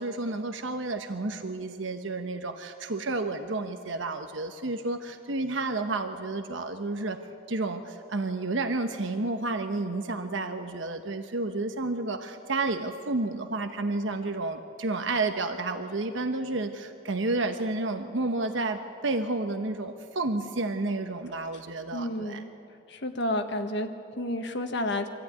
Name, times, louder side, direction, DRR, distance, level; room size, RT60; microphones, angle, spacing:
voice 1, 0.0-7.2 7.5-22.4, right 2 dB, 75° right, 6 dB, 1.1 m, -31 dB
voice 2, 21.9-22.5 22.9-25.1, left 1 dB, 65° left, 6 dB, 1.6 m, -31 dB
24.5 x 14.0 x 9.5 m, 2.6 s
head